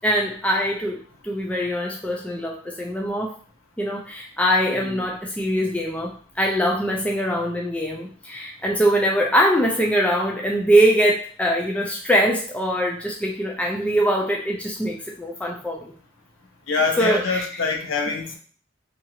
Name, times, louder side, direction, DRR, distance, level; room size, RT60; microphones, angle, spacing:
voice 1, 0.0-3.3 3.8-15.9 17.0-17.4, equal, 5° left, -1 dB, 0.3 m, -22 dB
voice 2, 4.7-5.0 16.7-18.4, left 4 dB, 80° left, 2 dB, 0.6 m, -25 dB
2.8 x 2.5 x 2.7 m, 0.44 s
head